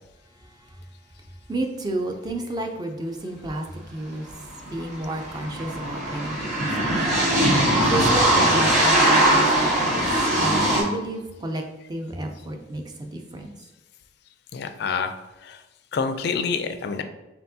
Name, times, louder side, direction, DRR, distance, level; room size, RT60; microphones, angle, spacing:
voice 1, 1.5-3.7 3.9-10.0 10.4-11.6 11.9-13.6, right 1 dB, 20° right, 3 dB, 0.4 m, -31 dB
sound 1, 4.3-4.4 4.6-10.8, right 1 dB, 40° right, 1.2 m, -20 dB
voice 2, 14.5-15.1 15.4-15.6 15.9-17.0, left 5 dB, 60° left, 8 dB, 0.4 m, -27 dB
4.5 x 3.5 x 2.7 m, 1.1 s
head